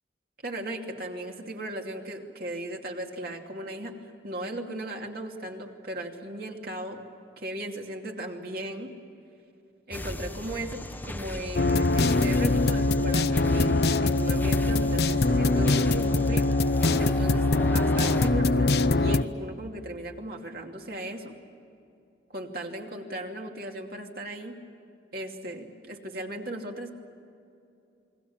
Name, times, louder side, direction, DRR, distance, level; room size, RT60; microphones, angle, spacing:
voice 1, 0.4-7.0 7.4-8.9 9.9-16.5 17.0-17.5 17.7-21.3 22.3-24.6 25.1-26.9, right 1 dB, 55° right, 2 dB, 2.7 m, -37 dB
sound 1, 9.9-18.3, left 1 dB, 10° left, 0.9 m, -37 dB
sound 2, 11.5-19.2, left 2 dB, 60° left, 0.7 m, -23 dB
29.0 x 22.0 x 7.3 m, 2.6 s
head